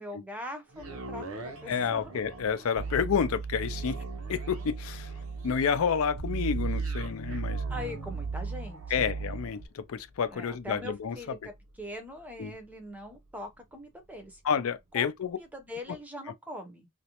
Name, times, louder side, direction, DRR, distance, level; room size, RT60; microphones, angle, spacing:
voice 1, 0.0-2.1 7.7-9.4 10.3-14.4 14.9-16.9, left 1 dB, 5° right, 0.5 m, -42 dB
sound 1, 0.7-14.9 15.4-15.5, right 2 dB, 70° right, 0.6 m, -47 dB
voice 2, 1.7-4.0 4.3-5.1 5.4-7.6 8.9-11.2 12.4-12.6 14.4-15.4, left 6 dB, 75° left, 0.4 m, -29 dB
sound 2, 2.8-9.7, right 4 dB, 50° left, 0.8 m, -36 dB
2.4 x 2.1 x 2.8 m
head